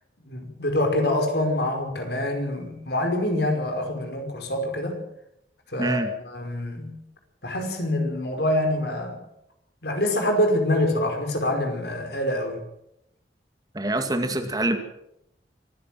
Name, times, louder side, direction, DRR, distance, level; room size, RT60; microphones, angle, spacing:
voice 1, 0.3-5.0 5.7-6.9 7.4-9.2 9.8-12.6, left 1 dB, 65° left, 4 dB, 5.2 m, -25 dB
voice 2, 5.8-6.1 13.7-14.8, right 1 dB, 20° right, 6 dB, 2.2 m, -25 dB
24.5 x 15.5 x 7.7 m, 0.81 s
head